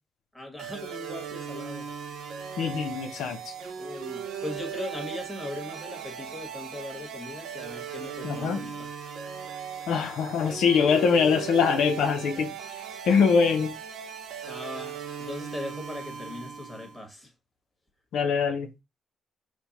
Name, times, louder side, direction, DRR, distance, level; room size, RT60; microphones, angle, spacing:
voice 1, 0.3-1.9 3.8-8.9 14.5-17.3, left 1 dB, ahead, 1.5 m, -39 dB
sound 1, 0.6-17.0, right 7 dB, 80° right, 0.7 m, -38 dB
voice 2, 2.6-3.4 8.2-8.6 9.9-12.5 13.1-13.7 18.1-18.7, left 6 dB, 80° left, 0.6 m, -23 dB
4.5 x 2.2 x 4.0 m
cardioid pair, 90°, 0 cm